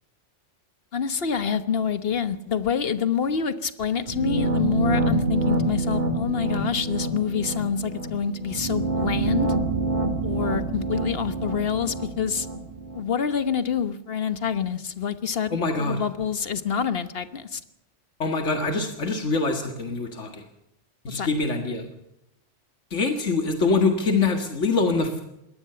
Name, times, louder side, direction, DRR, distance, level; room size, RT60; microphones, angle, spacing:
voice 1, 0.9-9.5 10.2-12.5 12.9-17.6 21.1-21.3, left 7 dB, 55° left, 12 dB, 1.4 m, -27 dB
sound 1, 4.1-13.0, right 2 dB, 40° right, 2.9 m, -27 dB
voice 2, 15.5-16.0 18.2-20.4 21.0-21.9 22.9-25.2, left 3 dB, 85° left, 5 dB, 2.2 m, -24 dB
22.0 x 18.0 x 6.9 m, 0.86 s
omnidirectional pair, 1.2 m